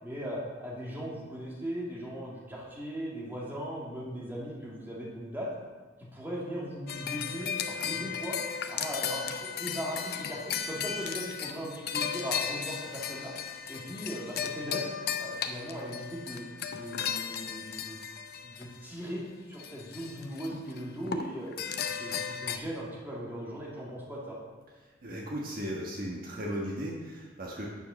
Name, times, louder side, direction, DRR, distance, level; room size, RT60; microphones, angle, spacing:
voice 1, 0.0-5.5 6.0-8.4 8.7-13.3 13.7-14.9 15.2-16.4 16.7-18.0 18.4-21.5 22.0-24.4, equal, 10° right, -5 dB, 2.3 m, -38 dB
sound 1, 6.9-19.0 19.5-20.8 21.1-22.6, left 7 dB, 50° left, 0.7 m, -35 dB
voice 2, 25.0-27.7, equal, 45° right, -2 dB, 1.5 m, -36 dB
9.5 x 6.8 x 6.3 m, 1.3 s
head